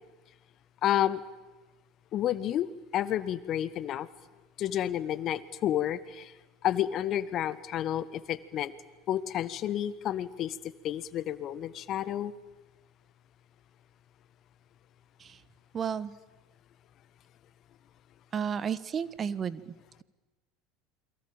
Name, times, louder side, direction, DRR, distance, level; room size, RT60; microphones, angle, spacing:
voice 1, 0.8-1.2 2.1-2.7 2.9-4.1 4.6-6.3 6.6-8.7 9.1-10.6 10.8-12.3, left 11 dB, 45° left, 16 dB, 1.6 m, -30 dB
voice 2, 15.7-16.1 18.3-19.6, right 7 dB, 35° right, 17 dB, 1.3 m, -31 dB
28.5 x 23.0 x 9.0 m, 1.1 s
hypercardioid pair, 80°, 0 cm